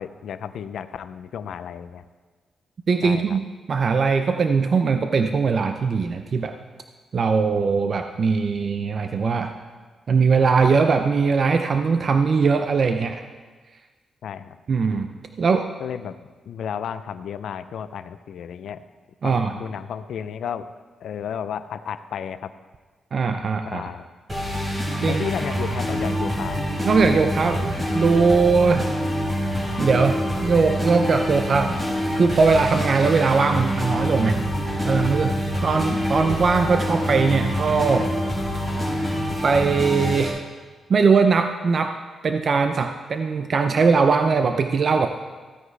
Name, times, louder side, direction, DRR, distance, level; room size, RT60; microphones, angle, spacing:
voice 1, 0.0-2.0 3.0-3.4 14.2-14.6 15.8-16.2 16.5-18.8 19.2-20.6 21.0-22.5 23.7-24.1 25.1-26.6, left 8 dB, 75° left, 12 dB, 0.5 m, -32 dB
voice 2, 2.9-3.4 3.7-6.5 7.1-9.5 10.1-13.2 14.7-15.1 15.4-15.7 19.2-19.5 23.1-23.9 25.0-25.2 26.8-28.9 29.8-31.8 32.1-34.5 34.8-35.3 35.6-38.1 39.4-40.4 40.9-42.0 42.2-45.1, right 5 dB, 45° right, 6 dB, 0.5 m, -20 dB
sound 1, 24.3-40.3, equal, 20° right, 3.6 m, -26 dB
15.5 x 9.4 x 3.3 m, 1.4 s
cardioid pair, 125°, 0 cm